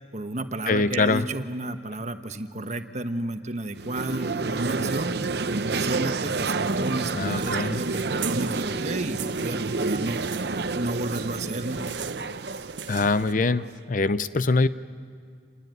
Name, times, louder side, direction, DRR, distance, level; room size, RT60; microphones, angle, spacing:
voice 1, 0.1-5.1 5.7-10.2 10.7-11.8, right 2 dB, 40° right, 8 dB, 1.2 m, -32 dB
voice 2, 0.7-1.3 7.2-7.8 12.9-14.7, left 3 dB, 45° left, 14 dB, 0.6 m, -23 dB
sound 1, 3.8-13.8, right 3 dB, 60° right, 0.8 m, -29 dB
sound 2, 6.6-13.3, right 9 dB, 85° right, 1.1 m, -41 dB
27.5 x 20.0 x 9.5 m, 2.3 s
head